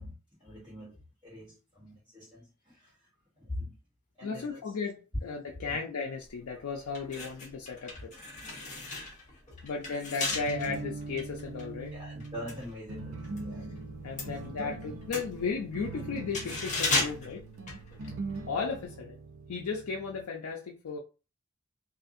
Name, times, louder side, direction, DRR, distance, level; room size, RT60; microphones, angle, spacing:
voice 1, 0.0-3.0 3.4-3.8 4.2-4.6 5.7-5.8 11.9-13.8 14.2-15.0, left 1 dB, 20° right, 1.4 m, -44 dB
voice 2, 4.2-8.1 9.6-11.9 14.0-17.5 18.5-19.2 19.5-21.0, left 4 dB, 80° left, 0.4 m, -35 dB
sound 1, 6.3-6.4 6.9-13.5 13.8-18.4 18.7-18.9, left 3 dB, 35° left, 0.7 m, -36 dB
sound 2, 10.3-20.2, right 3 dB, 70° right, 0.5 m, -42 dB
2.6 x 2.4 x 2.5 m
head